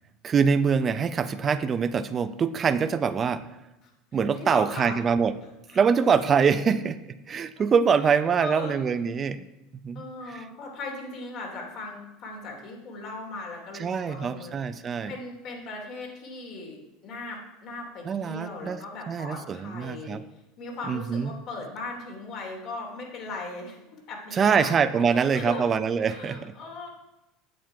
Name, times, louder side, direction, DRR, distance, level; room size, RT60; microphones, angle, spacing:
voice 1, 0.2-3.4 4.1-5.4 5.7-7.0 7.3-9.5 9.8-10.4 13.7-15.1 18.0-18.8 19.1-20.2 20.9-21.3 24.3-26.5, right 6 dB, 30° right, 12 dB, 0.5 m, -24 dB
voice 2, 3.8-5.0 5.7-5.8 6.7-6.8 8.0-8.8 9.9-14.6 15.1-20.2 20.6-24.7 25.0-25.6 26.0-26.9, left 3 dB, 55° left, 0 dB, 2.8 m, -38 dB
7.7 x 7.3 x 4.6 m, 0.95 s
supercardioid pair, 105°, 0 cm